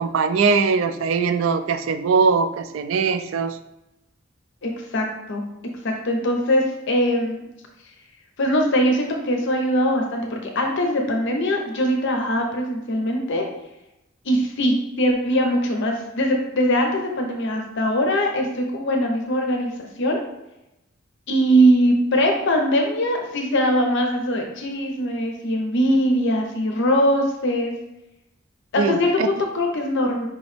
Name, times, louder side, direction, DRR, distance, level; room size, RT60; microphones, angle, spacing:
voice 1, 0.0-3.6 28.8-29.3, right 5 dB, 70° right, 8 dB, 0.3 m, -21 dB
voice 2, 4.6-5.4 5.8-7.4 8.4-13.5 14.2-19.7 20.0-20.2 21.3-27.7 28.7-30.3, equal, 60° left, 2 dB, 0.7 m, -21 dB
4.9 x 3.0 x 3.2 m, 0.94 s
head